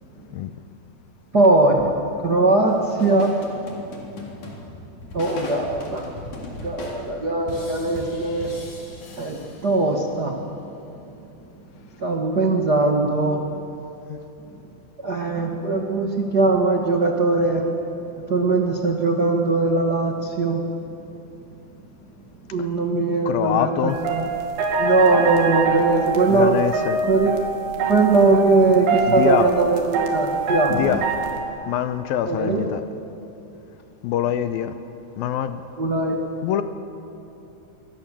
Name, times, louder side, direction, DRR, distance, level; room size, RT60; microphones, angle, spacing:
voice 1, 1.3-1.9 2.2-3.3 5.1-6.1 6.6-8.5 9.2-10.4 12.0-13.4 15.0-17.6 18.3-20.6 22.5-23.7 24.1-24.4 24.8-26.6 27.1-27.4 27.9-30.9 32.2-32.7 35.8-36.2, right 3 dB, 55° right, 1 dB, 1.0 m, -20 dB
sound 1, 2.7-10.1, left 2 dB, 50° left, 4.7 m, -38 dB
voice 2, 23.3-24.0 26.3-27.0 29.1-29.5 30.7-31.0 31.7-32.8 34.0-34.7 35.2-35.6 36.4-36.6, left 10 dB, 75° left, 9 dB, 2.3 m, -24 dB
sound 2, 23.9-31.4, right 4 dB, 75° right, 4.2 m, -25 dB
27.0 x 24.0 x 7.4 m, 2.8 s
omnidirectional pair, 4.7 m